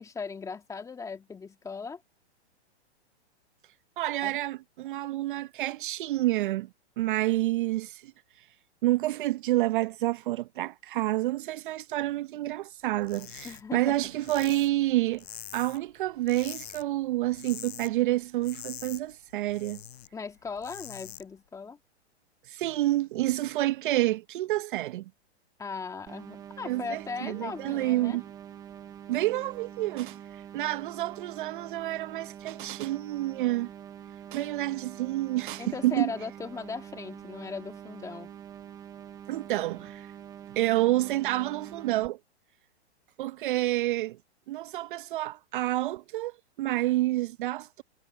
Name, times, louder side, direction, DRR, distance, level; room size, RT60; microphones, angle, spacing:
voice 1, 0.0-2.0 4.2-4.4 13.4-14.0 20.1-21.8 25.6-28.2 35.6-38.3, left 5 dB, 10° left, 1.9 m, -38 dB
voice 2, 4.0-6.7 7.0-8.1 8.8-15.2 15.5-19.8 22.5-25.0 26.6-28.2 29.1-30.2 30.5-33.7 34.3-36.1 39.3-40.1 40.6-42.2 43.2-44.2 44.5-47.8, right 16 dB, 50° right, 0.8 m, -28 dB
sound 1, 13.0-13.6 13.9-15.9 16.2-16.8 17.2-17.9 18.2-20.1 20.5-21.2, left 11 dB, 65° left, 6.8 m, -44 dB
sound 2, 26.1-42.1, right 9 dB, 10° right, 0.5 m, -45 dB
hypercardioid pair, 140°, 33 cm